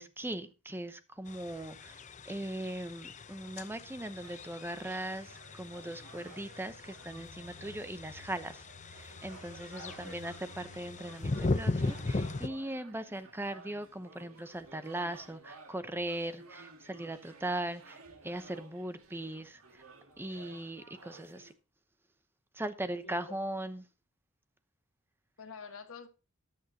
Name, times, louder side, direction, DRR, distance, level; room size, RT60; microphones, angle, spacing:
voice 1, 0.0-2.0 2.2-19.8 20.2-21.5 22.5-23.8, right 1 dB, 10° right, 0.8 m, -39 dB
sound 1, 1.3-12.5, left 2 dB, 35° left, 0.7 m, -38 dB
sound 2, 4.2-21.5, right 3 dB, 70° right, 2.4 m, -55 dB
voice 2, 9.7-10.2 23.0-23.4 25.4-26.1, left 5 dB, 65° left, 1.7 m, -48 dB
14.5 x 10.0 x 2.9 m
head